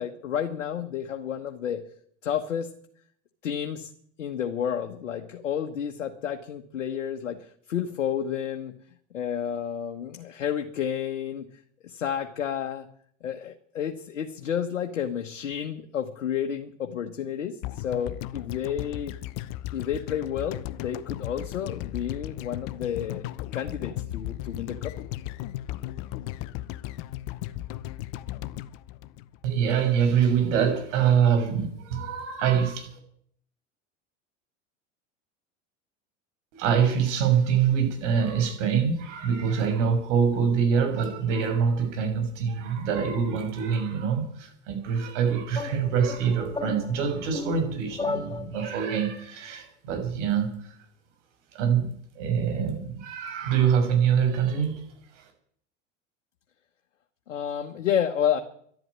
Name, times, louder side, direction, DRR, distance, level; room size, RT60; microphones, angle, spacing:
voice 1, 0.0-1.8 2.2-2.7 3.4-3.9 4.2-8.7 9.1-11.5 11.8-12.9 13.2-19.1 19.7-23.3 23.5-24.9 57.3-58.4, left 9 dB, 85° left, 4 dB, 1.5 m, -30 dB
sound 1, 17.6-29.8 30.1-30.2, left 15 dB, 60° left, 1.0 m, -36 dB
voice 2, 29.4-32.9 36.5-50.7 51.5-54.8 55.1-55.2, right 7 dB, 75° right, 5 dB, 6.3 m, -25 dB
sound 2, 45.5-49.0, left 3 dB, 10° left, 2.8 m, -35 dB
12.0 x 12.0 x 9.5 m, 0.64 s
hypercardioid pair, 85°, 37 cm